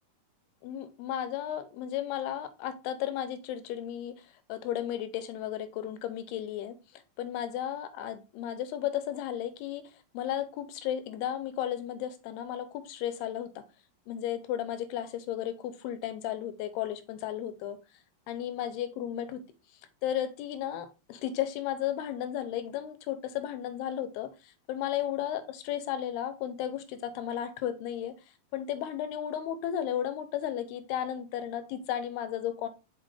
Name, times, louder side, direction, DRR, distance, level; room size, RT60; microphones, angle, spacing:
voice 1, 0.6-13.6 14.1-17.8 18.3-19.4 20.0-28.1 28.5-32.7, left 11 dB, 85° left, 2.7 m, -34 dB
5.8 x 5.3 x 3.5 m
omnidirectional pair, 4.6 m